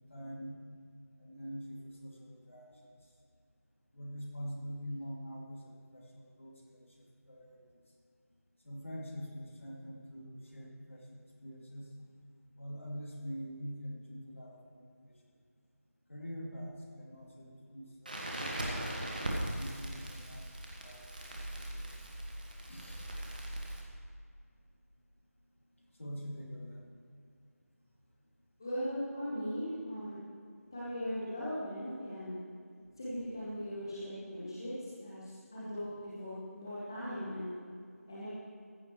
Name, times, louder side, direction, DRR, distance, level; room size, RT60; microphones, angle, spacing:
voice 1, 0.1-0.6 1.2-2.9 3.9-6.9 7.3-7.6 8.6-11.1 11.4-11.9 12.6-15.1 16.1-20.5 20.8-21.0 21.3-21.9 22.7-23.1 26.0-26.8, equal, 55° left, -2 dB, 2.5 m, -45 dB
Crackle, 18.1-23.8, right 1 dB, 35° right, 1.4 m, -39 dB
voice 2, 28.6-30.2 30.7-32.4 33.0-34.7 35.0-37.6 38.1-38.3, equal, 15° left, -10 dB, 1.2 m, -39 dB
14.5 x 12.0 x 3.2 m, 2.3 s
figure-of-eight pair, 175°, 8 cm